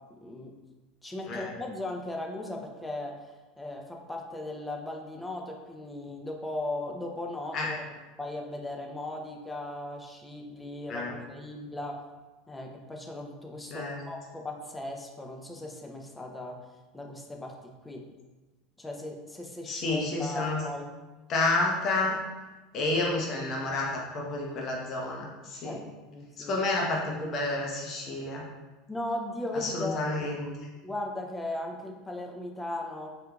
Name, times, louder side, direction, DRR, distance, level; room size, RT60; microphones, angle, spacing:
voice 1, 0.2-0.5 1.0-3.3 3.6-12.0 12.5-16.6 16.9-17.5 17.8-18.0 18.8-20.9 25.6-26.5 28.9-30.3 30.8-33.1, left 1 dB, 10° left, 1 dB, 0.5 m, -37 dB
voice 2, 19.7-20.6 21.3-22.2 22.7-25.8 26.4-28.4 29.6-30.5, left 2 dB, 45° left, -1 dB, 0.8 m, -30 dB
3.5 x 2.7 x 2.3 m, 1.2 s
figure-of-eight pair, 75°, 0 cm